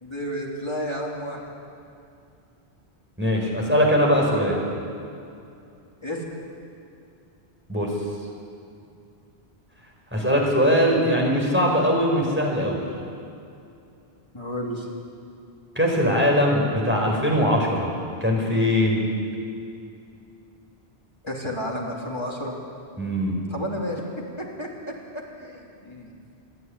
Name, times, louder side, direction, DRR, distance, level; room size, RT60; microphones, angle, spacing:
voice 1, 0.0-1.4 4.2-4.5 6.0-6.2 14.3-14.9 21.2-22.5 23.5-24.1 24.4-26.2, equal, 25° left, -3 dB, 3.3 m, -32 dB
voice 2, 3.2-4.6 7.7-7.9 10.1-12.8 15.7-17.9 18.2-19.0 23.0-23.4, equal, 10° right, -2 dB, 4.8 m, -21 dB
27.0 x 11.0 x 9.9 m, 2.5 s
omnidirectional pair, 1.1 m